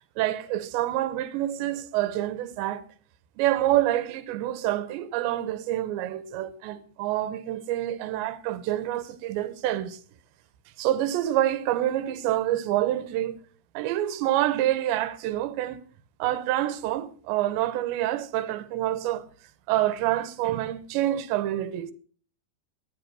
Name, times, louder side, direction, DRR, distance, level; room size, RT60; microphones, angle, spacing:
voice 1, 0.2-2.8 3.4-10.0 10.8-13.4 13.7-15.8 16.2-19.3 19.7-21.9, right 13 dB, 80° right, 3.1 m, -27 dB
13.0 x 10.5 x 6.1 m
omnidirectional pair, 5.1 m